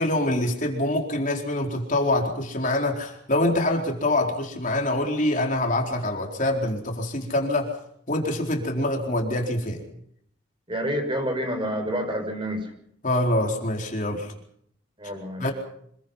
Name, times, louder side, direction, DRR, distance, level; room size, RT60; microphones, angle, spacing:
voice 1, 0.0-7.7 8.1-9.9 13.0-14.3 15.4-15.5, left 1 dB, 40° left, 2 dB, 4.3 m, -25 dB
voice 2, 10.7-12.6 15.0-15.4, equal, 25° right, 5 dB, 6.6 m, -28 dB
27.0 x 22.5 x 5.8 m, 0.68 s
head